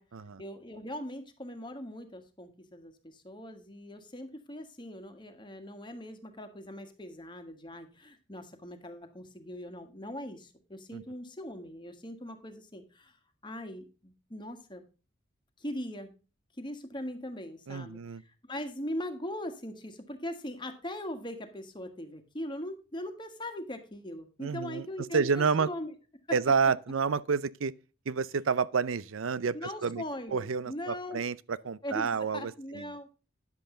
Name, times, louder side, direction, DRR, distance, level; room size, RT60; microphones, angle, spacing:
voice 1, 0.4-13.2 13.4-14.8 15.6-16.1 16.6-25.9 26.3-26.4 29.5-31.2 31.8-33.1, left 1 dB, 25° left, 1.6 m, -40 dB
voice 2, 17.7-18.2 24.4-24.8 25.1-25.7 26.3-27.7 28.1-30.0 30.3-31.3 31.6-32.8, right 5 dB, 90° right, 0.6 m, -29 dB
10.5 x 7.8 x 3.8 m
head